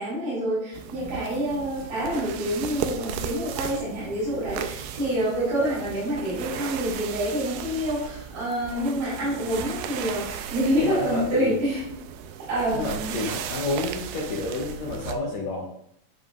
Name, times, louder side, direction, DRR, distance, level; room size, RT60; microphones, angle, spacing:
voice 1, 0.0-12.0 12.5-13.1, equal, 45° right, -8 dB, 4.4 m, -27 dB
sound 1, 0.7-15.2, right 8 dB, 85° right, 2.2 m, -36 dB
voice 2, 9.2-9.7 10.8-11.6 12.7-15.7, left 2 dB, 70° left, -1 dB, 1.7 m, -30 dB
10.5 x 5.3 x 2.5 m, 0.69 s
omnidirectional pair, 4.0 m